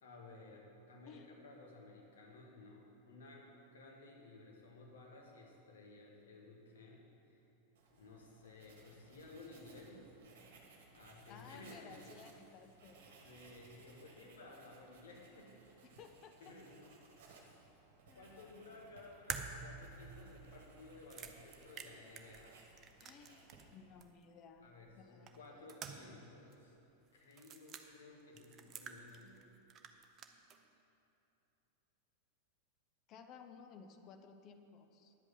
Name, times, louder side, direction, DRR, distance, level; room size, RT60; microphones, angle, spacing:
voice 1, 0.0-7.4 8.0-10.1 10.9-12.0 13.2-15.9 16.4-16.8 18.2-22.6 24.6-26.8 27.1-29.4, left 2 dB, 65° left, -1 dB, 1.8 m, -56 dB
Writing, 7.7-24.0, right 4 dB, 55° right, 1.5 m, -63 dB
voice 2, 11.3-13.0 16.0-16.4 18.1-18.5 23.0-24.7 25.0-25.4 33.1-35.2, left 6 dB, 35° left, 6 dB, 0.7 m, -57 dB
sound 1, 19.3-23.7 24.0-24.1 25.3-26.3 26.5-26.6 27.3-27.8 28.4-29.4 29.7-30.6, right 6 dB, 30° right, 0.6 m, -48 dB
10.5 x 8.1 x 5.6 m, 2.9 s
figure-of-eight pair, 90°, 0 cm